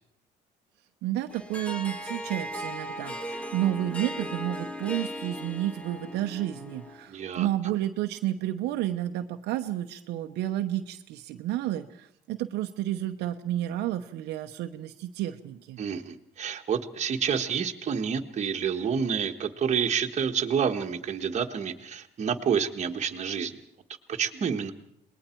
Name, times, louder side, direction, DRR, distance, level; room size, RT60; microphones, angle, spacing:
voice 1, 1.0-15.8, right 13 dB, 85° right, 5 dB, 1.0 m, -31 dB
Harp, 1.3-7.1, equal, 5° left, 1.6 m, -37 dB
voice 2, 7.1-7.5 15.8-23.6 24.1-24.7, right 7 dB, 40° right, 4 dB, 1.6 m, -28 dB
27.5 x 20.5 x 4.6 m, 0.75 s
cardioid pair, 110°, 17 cm